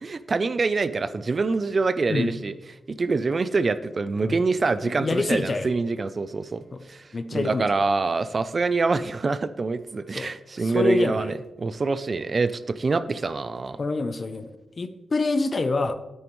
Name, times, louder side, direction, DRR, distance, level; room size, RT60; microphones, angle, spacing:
voice 1, 0.0-2.5 3.0-13.8, right 4 dB, 40° right, 13 dB, 0.4 m, -25 dB
voice 2, 4.8-5.7 6.7-6.8 7.1-7.7 10.1-10.3 10.6-11.3 13.8-14.5 14.8-15.9, left 3 dB, 40° left, 10 dB, 0.6 m, -26 dB
9.5 x 8.9 x 3.1 m, 1.0 s
wide cardioid pair, 120°, 0 cm